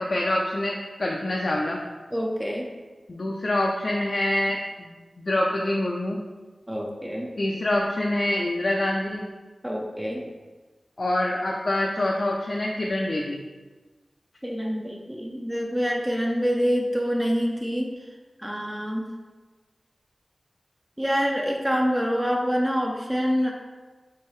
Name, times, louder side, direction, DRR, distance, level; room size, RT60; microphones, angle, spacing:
voice 1, 0.0-1.8 3.1-4.9 5.2-6.2 7.4-9.3 11.0-13.4, left 1 dB, 55° left, -2 dB, 0.5 m, -26 dB
voice 2, 2.1-2.7 6.7-7.3 9.6-10.3 14.4-17.9 18.4-19.1 21.0-23.5, equal, 10° right, -1 dB, 0.6 m, -26 dB
4.6 x 3.6 x 3.1 m, 1.3 s
wide cardioid pair, 60°, 0 cm